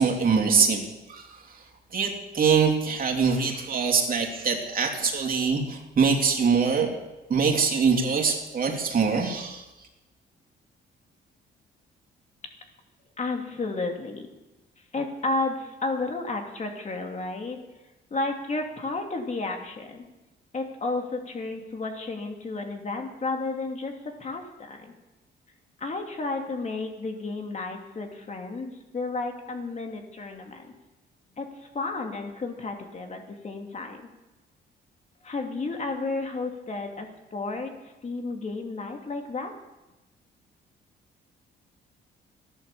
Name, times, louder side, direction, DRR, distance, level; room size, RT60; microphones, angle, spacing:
voice 1, 0.0-1.6 1.9-7.0 7.3-9.6, right 5 dB, 45° right, 2 dB, 3.1 m, -24 dB
voice 2, 13.2-14.3 14.9-17.6 18.1-20.0 20.5-23.9 24.2-24.9 25.8-30.7 31.4-31.5 31.7-34.0 35.2-37.7 38.0-39.5, left 3 dB, 35° left, 3 dB, 2.6 m, -32 dB
14.0 x 11.0 x 7.3 m, 1.0 s
cardioid pair, 90°, 20 cm